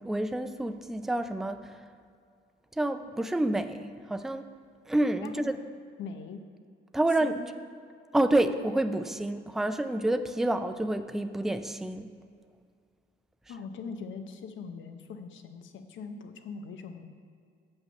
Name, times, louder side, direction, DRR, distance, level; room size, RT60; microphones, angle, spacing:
voice 1, 0.0-1.8 2.8-4.6 4.9-5.6 6.9-7.4 8.1-12.1, right 1 dB, ahead, 9 dB, 0.4 m, -28 dB
voice 2, 5.2-5.6 6.0-6.4 7.2-7.5 13.5-17.0, left 5 dB, 75° left, 7 dB, 0.8 m, -41 dB
7.2 x 5.7 x 6.7 m, 2.2 s
cardioid pair, 90°, 20 cm